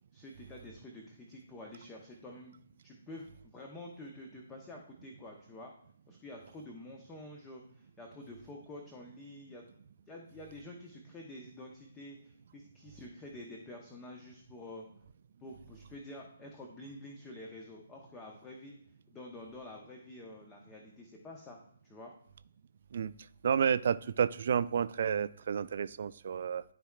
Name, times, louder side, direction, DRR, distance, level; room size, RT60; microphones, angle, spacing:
voice 1, 0.1-2.5 2.8-5.7 6.1-9.6 10.1-14.8 15.4-18.7 19.1-21.6 21.8-22.1, left 1 dB, 15° left, 0 dB, 1.0 m, -48 dB
voice 2, 23.4-26.6, right 7 dB, 50° right, 14 dB, 0.3 m, -30 dB
12.5 x 4.4 x 2.4 m, 0.63 s
figure-of-eight pair, 135°, 0 cm